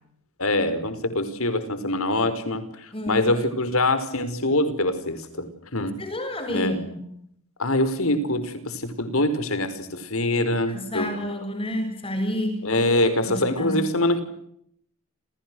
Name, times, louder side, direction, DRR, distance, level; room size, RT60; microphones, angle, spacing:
voice 1, 0.4-6.0 6.5-6.8 7.6-11.1 12.6-14.2, left 1 dB, 65° left, 12 dB, 5.2 m, -24 dB
voice 2, 2.9-3.2 6.0-7.1 10.7-12.6 13.3-13.9, equal, 25° left, 7 dB, 7.4 m, -29 dB
30.0 x 29.5 x 6.4 m, 0.71 s
head